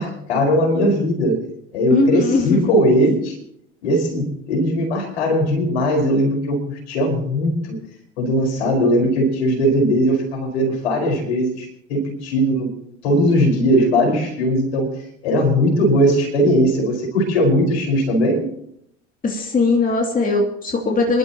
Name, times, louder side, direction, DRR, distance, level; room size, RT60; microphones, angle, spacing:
voice 1, 0.0-1.4 1.7-3.4 3.8-7.8 8.2-12.7 13.0-14.9 15.2-18.4, equal, 70° left, 2 dB, 5.0 m, -19 dB
voice 2, 1.9-2.6 19.2-21.2, left 3 dB, 25° left, 1 dB, 2.8 m, -19 dB
28.0 x 12.0 x 3.0 m, 0.73 s
figure-of-eight pair, 70°, 34 cm